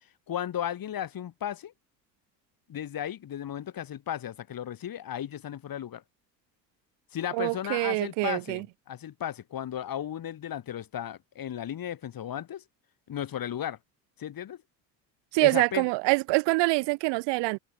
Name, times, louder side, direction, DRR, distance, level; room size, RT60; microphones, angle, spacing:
voice 1, 0.3-1.7 2.7-6.0 7.1-12.6 13.1-13.8 14.2-14.6 15.4-15.9, left 10 dB, 45° left, 7.4 m, -35 dB
voice 2, 7.3-8.6 15.3-17.6, right 26 dB, 55° right, 1.8 m, -25 dB
figure-of-eight pair, 65°, 50 cm